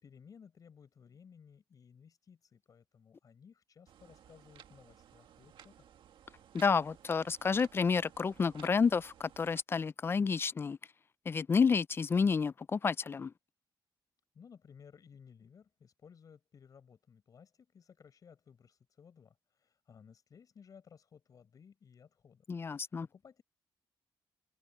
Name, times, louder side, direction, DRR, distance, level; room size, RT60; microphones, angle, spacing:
voice 1, 0.0-5.8 14.3-22.5 22.7-23.4, left 6 dB, 45° left, 6.2 m, -58 dB
sound 1, 3.9-9.6, right 9 dB, 85° right, 1.8 m, -58 dB
voice 2, 6.5-10.8 11.3-13.3 22.5-23.1, left 5 dB, 30° left, 0.4 m, -30 dB
open air
wide cardioid pair, 155°, 8 cm